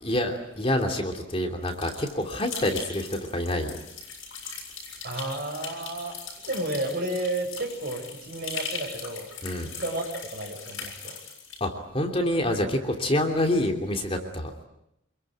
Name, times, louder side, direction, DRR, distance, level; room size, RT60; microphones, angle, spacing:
voice 1, 0.0-3.7 9.4-9.7 11.6-14.5, left 1 dB, 30° left, 4 dB, 3.0 m, -27 dB
sound 1, 1.7-11.6, left 5 dB, 80° left, 7.2 m, -40 dB
voice 2, 5.0-9.3 9.6-10.0 10.3-11.2, right 1 dB, 50° right, 3 dB, 6.5 m, -32 dB
27.0 x 22.5 x 9.2 m, 0.81 s
head